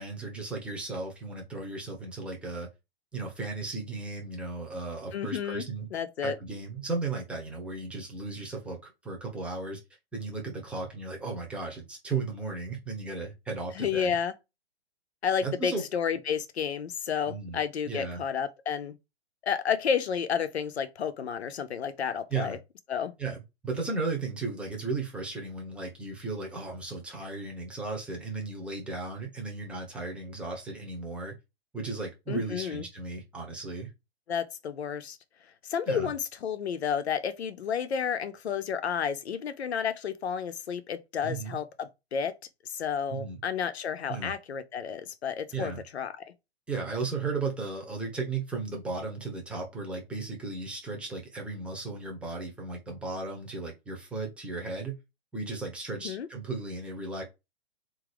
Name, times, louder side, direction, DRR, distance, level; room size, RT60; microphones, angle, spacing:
voice 1, 0.0-2.7 3.1-5.9 6.2-9.8 10.1-14.1 15.4-15.8 17.3-17.6 17.9-18.2 22.3-22.6 23.2-31.3 31.7-33.9 35.9-36.1 41.2-41.6 43.1-43.4 44.1-44.3 45.5-45.8 46.7-55.0 55.3-57.2, right 3 dB, 5° right, 0.8 m, -35 dB
voice 2, 5.1-5.6 5.9-6.4 13.7-14.3 15.2-18.9 19.4-22.6 22.9-23.1 32.3-32.8 34.3-35.2 35.6-42.3 42.7-46.2 56.0-56.3, left 7 dB, 75° left, 0.9 m, -31 dB
3.8 x 2.8 x 4.9 m
hypercardioid pair, 140°, 33 cm